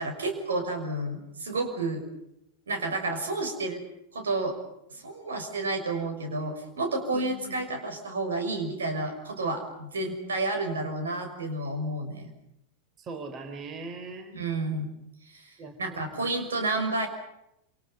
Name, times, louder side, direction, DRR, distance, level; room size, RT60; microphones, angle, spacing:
voice 1, 0.0-2.0 2.7-3.8 4.1-4.6 4.9-12.3 14.3-14.9 15.3-15.5 15.8-17.1, right 2 dB, 70° right, 6 dB, 6.3 m, -30 dB
voice 2, 7.1-7.6 13.0-14.4 15.6-16.3, right 3 dB, 30° right, 7 dB, 4.0 m, -41 dB
28.0 x 28.0 x 5.6 m, 0.82 s
figure-of-eight pair, 90°, 0 cm